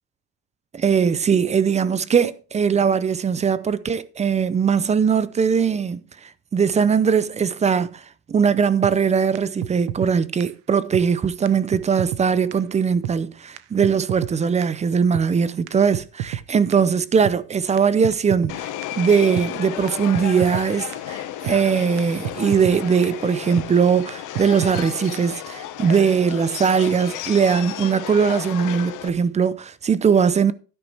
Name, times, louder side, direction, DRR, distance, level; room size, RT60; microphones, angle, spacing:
voice 1, 0.7-18.7 18.9-30.5, right 6 dB, 15° right, 0.5 m, -20 dB
sound 1, 8.8-8.9 9.3-9.4 9.6-10.1 10.4-10.5 10.9-11.0 11.5-11.6 11.7-12.2 12.5-12.6 13.0-13.2 13.6-13.7 13.8-14.3 14.6-14.7 15.1-15.3 15.7-16.4 16.7-16.8 17.2-17.4 17.8-17.9 18.0-18.5 18.8-18.9 19.4-19.5 19.9-20.0 20.1-20.7 20.9-21.0 21.5-21.6 22.0-22.1 22.2-22.8 23.0-23.1 23.6-23.7 24.1-24.2 24.4-24.9 25.1-25.2, right 13 dB, 65° right, 1.0 m, -29 dB
Subway metro underground, 18.5-29.1, left 12 dB, 45° left, 1.3 m, -33 dB
12.0 x 10.5 x 3.4 m
supercardioid pair, 130°, 41 cm